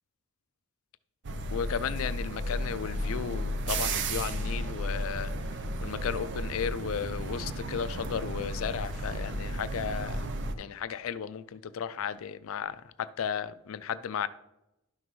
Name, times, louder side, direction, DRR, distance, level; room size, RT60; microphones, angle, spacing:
sound 1, 1.2-10.5, right 1 dB, 55° right, 0.6 m, -33 dB
voice 1, 1.5-5.3 5.8-10.3 10.6-14.3, left 7 dB, 65° left, 0.4 m, -34 dB
11.5 x 6.0 x 3.1 m
head